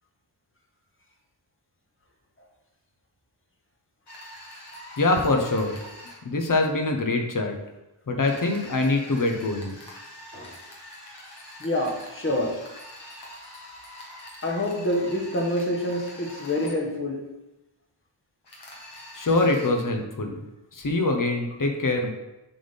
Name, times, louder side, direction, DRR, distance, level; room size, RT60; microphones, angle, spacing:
sound 1, 4.1-6.2 8.2-16.7 18.4-19.7, left 1 dB, 55° left, 1.7 m, -44 dB
voice 1, 5.0-5.8 6.2-7.5 8.1-9.8 19.1-20.4 20.7-22.1, left 2 dB, 40° left, 3 dB, 1.0 m, -24 dB
voice 2, 11.6-12.6 14.4-17.3, left 1 dB, 25° left, 0 dB, 1.2 m, -27 dB
7.4 x 4.2 x 3.5 m, 0.98 s
wide cardioid pair, 105°, 47 cm